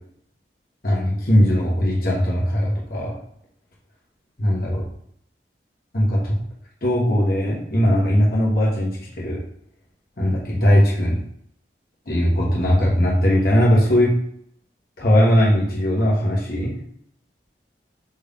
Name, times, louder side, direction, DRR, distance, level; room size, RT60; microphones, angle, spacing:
voice 1, 0.8-3.2 4.4-4.8 5.9-6.4 6.8-9.4 10.2-11.2 12.1-14.1 15.0-16.8, equal, 55° left, -4 dB, 1.1 m, -19 dB
5.3 x 2.6 x 3.5 m, 0.67 s
head